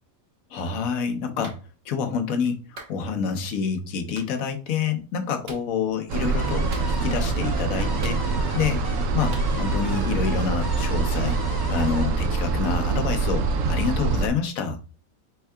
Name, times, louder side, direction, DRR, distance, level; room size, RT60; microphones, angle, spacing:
voice 1, 0.5-1.6 1.9-8.2 8.5-8.8 9.1-14.8, left 6 dB, 75° left, 6 dB, 1.2 m, -27 dB
Clapping, 1.4-1.6 2.8-3.0 4.2-4.3 5.5-5.7 6.7-7.2 8.0-8.6 9.3-9.5, right 3 dB, 50° right, 1.1 m, -42 dB
sound 1, 6.1-14.3, right 3 dB, 70° right, 1.0 m, -25 dB
sound 2, 6.4-13.3, left 1 dB, 20° left, 0.7 m, -39 dB
4.5 x 4.5 x 2.2 m, 0.35 s
omnidirectional pair, 1.5 m